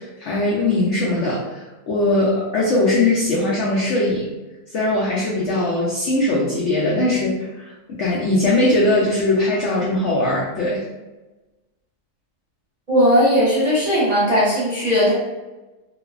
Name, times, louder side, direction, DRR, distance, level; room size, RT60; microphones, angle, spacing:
voice 1, 0.0-4.3 4.7-10.8, left 2 dB, 75° left, -5 dB, 0.6 m, -20 dB
voice 2, 12.9-15.1, equal, 35° right, -10 dB, 0.7 m, -17 dB
3.0 x 2.0 x 2.3 m, 1.1 s
omnidirectional pair, 1.7 m